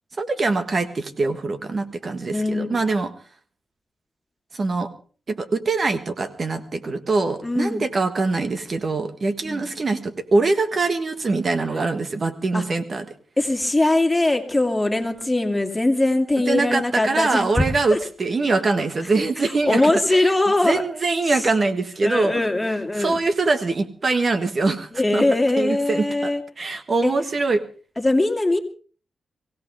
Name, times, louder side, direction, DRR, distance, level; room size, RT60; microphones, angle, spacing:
voice 1, 0.2-3.1 4.5-4.9 5.3-13.0 16.5-19.8 20.1-20.3 20.6-22.4 23.0-25.2 25.6-26.3 26.6-27.6, right 3 dB, 45° right, 9 dB, 1.5 m, -23 dB
voice 2, 2.3-2.9 7.4-7.9 9.4-9.7 12.5-12.6 13.4-17.6 17.9-18.0 19.4-20.8 21.2-21.5 22.0-23.2 24.9-26.4 27.0-27.1 28.0-28.6, left 2 dB, 15° left, 4 dB, 2.6 m, -21 dB
23.0 x 16.5 x 3.5 m, 0.40 s
cardioid pair, 100°, 0 cm